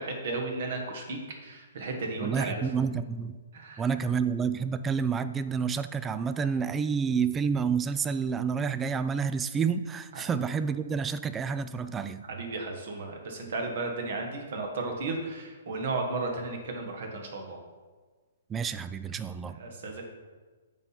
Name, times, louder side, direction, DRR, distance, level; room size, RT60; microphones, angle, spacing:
voice 1, 0.0-2.7 3.5-3.9 10.1-10.2 12.3-17.6 19.5-20.0, right 3 dB, 55° right, 2 dB, 1.5 m, -34 dB
voice 2, 2.2-3.4 3.8-12.3 18.5-19.6, right 6 dB, 15° right, 13 dB, 0.3 m, -29 dB
7.0 x 4.3 x 5.8 m, 1.4 s
figure-of-eight pair, 120°, 0 cm